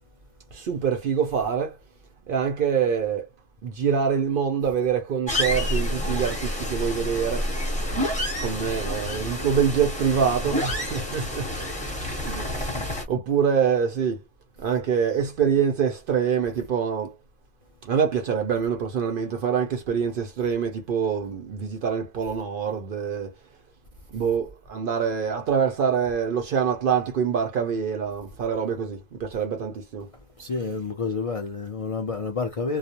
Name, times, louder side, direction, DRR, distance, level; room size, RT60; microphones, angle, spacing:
voice 1, 0.5-1.8 2.3-3.3 3.6-7.5 8.4-11.5 12.2-12.7 13.1-14.2 14.6-17.1 17.8-23.3 24.1-30.1, right 7 dB, 60° right, 0.6 m, -25 dB
sound 1, 5.3-13.0, equal, 5° left, 0.7 m, -28 dB
voice 2, 12.2-13.0 30.4-32.8, left 4 dB, 65° left, 0.3 m, -30 dB
2.3 x 2.0 x 2.8 m
omnidirectional pair, 1.3 m